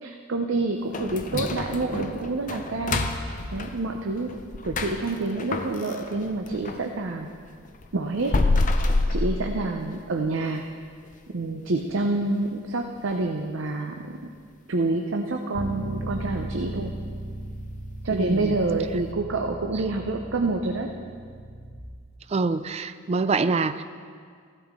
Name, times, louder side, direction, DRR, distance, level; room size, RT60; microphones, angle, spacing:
voice 1, 0.0-4.3 4.6-7.3 7.9-8.3 9.1-10.6 11.3-14.2 14.7-16.9 18.0-20.9, right 2 dB, 70° right, 3 dB, 0.7 m, -27 dB
sound 1, 0.9-6.9 7.2-10.1 10.4-10.5 11.0-11.1 11.7-12.0 12.3-12.4 13.0-13.1, left 2 dB, 40° left, 0.6 m, -28 dB
Bass guitar, 15.6-21.8, right 1 dB, 10° left, 0.9 m, -36 dB
voice 2, 18.1-18.5 22.3-23.8, right 4 dB, 30° right, 12 dB, 0.3 m, -25 dB
15.0 x 12.0 x 3.7 m, 2.1 s
head